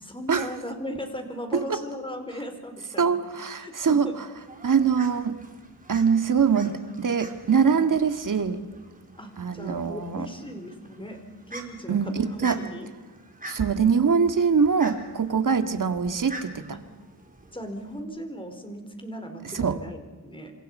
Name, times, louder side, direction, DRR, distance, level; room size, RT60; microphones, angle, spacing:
voice 1, 0.0-3.2 3.5-4.1 9.2-11.2 11.5-12.9 15.7-15.8 16.7-16.8 17.5-20.5, equal, 15° left, 5 dB, 4.7 m, -37 dB
voice 2, 3.0-4.1 4.6-5.4 5.9-8.6 9.4-10.3 11.9-12.6 13.5-16.6 19.5-19.8, right 6 dB, 50° right, 8 dB, 2.1 m, -23 dB
Fowl, 4.4-18.0, right 1 dB, 20° right, 4.1 m, -46 dB
29.0 x 26.5 x 5.7 m, 1.3 s
wide cardioid pair, 115°, 39 cm